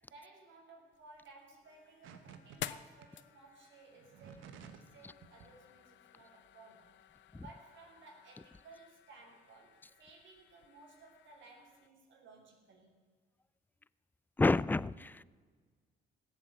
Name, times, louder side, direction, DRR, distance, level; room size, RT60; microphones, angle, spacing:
voice 1, 0.0-6.9 7.4-12.9, right 3 dB, 70° right, 0 dB, 3.2 m, -58 dB
sound 1, 0.9-11.9, left 12 dB, 70° left, 0.6 m, -52 dB
sound 2, 2.0-2.6 3.0-3.1 4.0-4.9 5.2-5.5, right 7 dB, 90° right, 1.1 m, -53 dB
voice 2, 14.4-15.2, left 2 dB, 10° left, 21 dB, 0.3 m, -29 dB
16.5 x 7.9 x 8.0 m, 1.5 s
cardioid pair, 90°, 20 cm